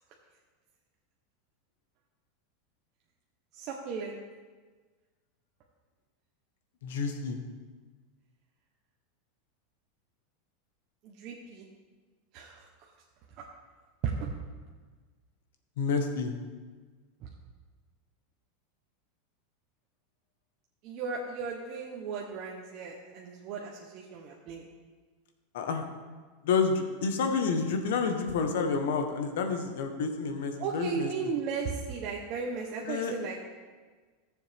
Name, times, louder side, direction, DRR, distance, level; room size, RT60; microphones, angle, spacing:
voice 1, 3.6-4.2 11.0-11.7 12.3-12.6 14.0-14.3 20.8-24.6 30.6-33.6, right 5 dB, 40° right, -2 dB, 1.0 m, -35 dB
voice 2, 6.8-7.4 15.8-16.3 25.5-25.8 26.4-31.1 32.8-33.1, left 5 dB, 80° left, 5 dB, 1.2 m, -29 dB
14.5 x 7.1 x 3.6 m, 1.4 s
supercardioid pair, 160°, 0 cm